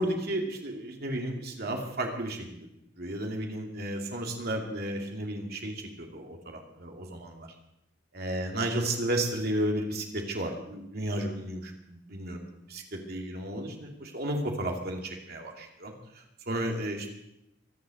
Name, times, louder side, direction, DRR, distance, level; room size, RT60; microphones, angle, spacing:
voice 1, 0.0-2.7 3.0-7.5 8.1-17.1, right 1 dB, 55° right, 2 dB, 2.6 m, -33 dB
23.5 x 7.9 x 7.7 m, 0.84 s
head